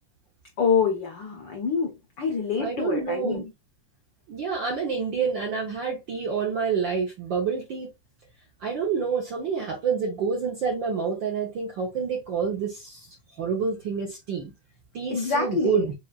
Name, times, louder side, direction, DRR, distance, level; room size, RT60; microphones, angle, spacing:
voice 1, 0.6-3.4 15.1-15.9, left 6 dB, 90° left, 1.0 m, -26 dB
voice 2, 2.6-3.4 4.3-7.9 8.6-13.1 13.4-14.5 14.9-15.9, right 6 dB, 65° right, 1.2 m, -28 dB
7.4 x 2.5 x 2.4 m
omnidirectional pair, 3.3 m